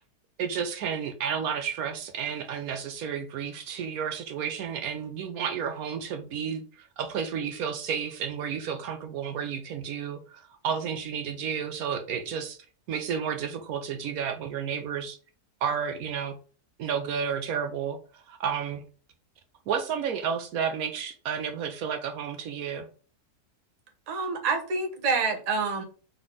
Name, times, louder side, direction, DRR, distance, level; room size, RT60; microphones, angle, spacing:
voice 1, 0.4-12.6 12.9-15.2 15.6-16.3 16.8-18.8 19.7-22.9, right 7 dB, 70° right, 7 dB, 1.0 m, -31 dB
voice 2, 24.1-25.8, right 4 dB, 35° right, 3 dB, 0.7 m, -27 dB
3.9 x 3.3 x 3.7 m, 0.40 s
omnidirectional pair, 1.7 m